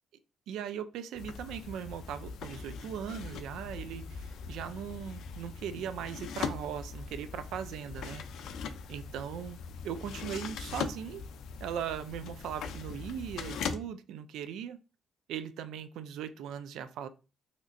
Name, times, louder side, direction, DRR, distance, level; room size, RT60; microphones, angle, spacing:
voice 1, 0.5-8.2 8.9-9.6 9.8-11.2 11.6-14.8 15.3-17.1, right 8 dB, 85° right, 0.3 m, -39 dB
sound 1, 1.2-13.8, left 6 dB, 80° left, 0.3 m, -41 dB
3.1 x 2.8 x 2.5 m
cardioid pair, 90°, 0 cm